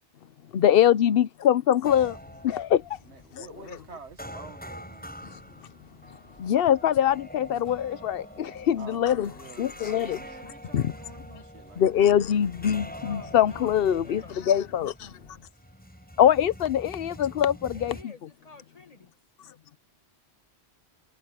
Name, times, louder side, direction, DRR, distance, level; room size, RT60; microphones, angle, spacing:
voice 1, 0.5-2.2 2.4-3.0 3.3-3.4 6.4-9.3 9.6-10.2 10.7-10.9 11.8-15.2 16.2-18.1, left 10 dB, 60° left, 0.8 m, -23 dB
sound 1, 1.8-18.0, equal, 10° left, 8.0 m, -45 dB
voice 2, 3.0-5.2 8.8-12.5, right 4 dB, 80° right, 2.0 m, -47 dB
Strum, 7.6-11.8, equal, 15° right, 5.6 m, -59 dB
voice 3, 12.9-14.4 17.7-19.1, left 3 dB, 35° left, 1.9 m, -49 dB
omnidirectional pair, 1.1 m